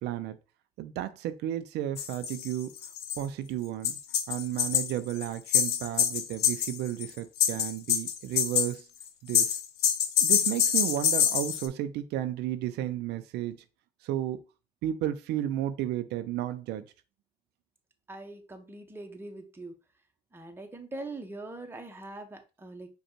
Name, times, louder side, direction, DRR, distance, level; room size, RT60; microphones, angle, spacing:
voice 1, 0.0-0.4 0.8-2.7 3.2-4.0 4.3-8.9 9.2-9.6 10.2-13.6 14.0-14.4 14.8-16.8, right 12 dB, 80° right, 11 dB, 0.5 m, -33 dB
sound 1, 2.0-2.5 2.8-3.2 3.8-7.1 7.4-8.7 9.0-11.7, left 9 dB, 75° left, 0.7 m, -26 dB
voice 2, 18.1-19.7 20.3-22.9, right 2 dB, 15° right, 5 dB, 0.8 m, -42 dB
5.2 x 2.2 x 4.4 m, 0.31 s
cardioid pair, 110°, 17 cm